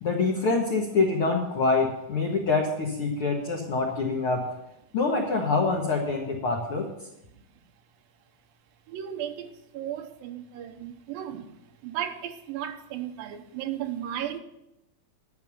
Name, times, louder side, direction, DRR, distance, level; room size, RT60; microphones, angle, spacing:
voice 1, 0.0-4.5 4.9-6.9, left 3 dB, 60° left, 1.4 m, -25 dB
voice 2, 8.9-11.6 11.8-14.4, right 10 dB, 85° right, 2.6 m, -35 dB
11.0 x 6.7 x 7.0 m
omnidirectional pair, 4.1 m